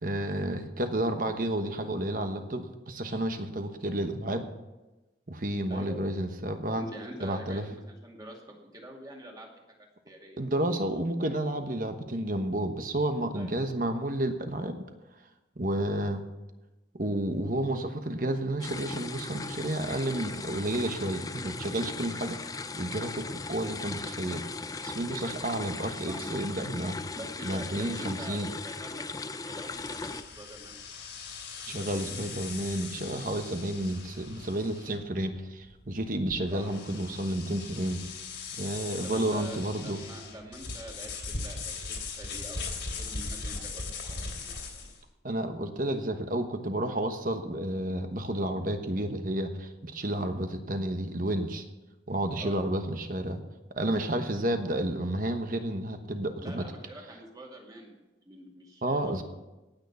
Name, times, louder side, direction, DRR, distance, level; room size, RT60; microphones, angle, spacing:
voice 1, 0.0-4.5 5.3-6.8 7.2-7.7 10.4-14.8 15.6-16.3 16.9-24.4 24.8-27.0 27.4-28.5 31.7-38.0 38.6-40.0 45.2-51.6 52.1-53.4 53.7-56.6 58.8-59.2, right 1 dB, 45° right, 7 dB, 1.2 m, -31 dB
voice 2, 5.7-6.2 6.8-8.4 8.7-9.5 10.0-10.5 13.3-13.8 26.1-26.3 27.2-29.1 29.5-30.8 36.5-36.7 39.0-43.8 44.1-44.9 52.4-52.7 56.4-58.0 58.3-59.2, right 1 dB, 20° right, 0 dB, 2.3 m, -45 dB
sound 1, 18.6-30.2, left 3 dB, 20° left, 0.5 m, -38 dB
sound 2, 29.6-45.0, left 4 dB, 75° left, 3.2 m, -40 dB
18.0 x 6.6 x 7.0 m, 1.1 s
head